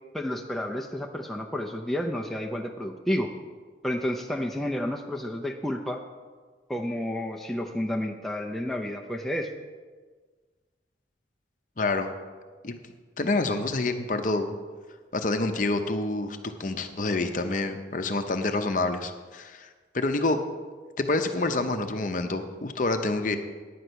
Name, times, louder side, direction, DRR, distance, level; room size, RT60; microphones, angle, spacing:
voice 1, 0.1-3.3 3.8-6.0 6.7-9.5, left 1 dB, ahead, 0 dB, 0.5 m, -30 dB
voice 2, 11.8-12.1 12.6-12.8 13.2-14.5 15.1-19.7 19.9-20.4 21.0-23.4, left 2 dB, 45° left, 7 dB, 0.7 m, -27 dB
10.0 x 5.6 x 8.0 m, 1.5 s
head